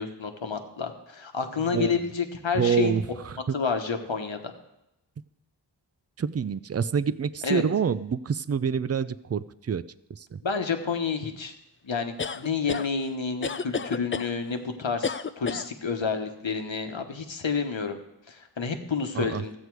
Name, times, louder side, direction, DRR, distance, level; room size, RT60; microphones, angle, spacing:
voice 1, 0.0-3.0 3.5-4.4 7.4-7.6 10.4-11.5 11.8-18.0 18.3-19.5, left 5 dB, 85° left, 5 dB, 1.2 m, -29 dB
voice 2, 1.7-2.0 2.5-3.5 6.2-9.8 10.1-10.4 19.1-19.4, right 7 dB, 35° right, 17 dB, 0.4 m, -27 dB
sound 1, 12.2-12.9 13.4-14.3 15.0-15.7, left 5 dB, 30° left, 0.4 m, -30 dB
14.0 x 8.1 x 4.7 m, 0.90 s
wide cardioid pair, 55°, 45 cm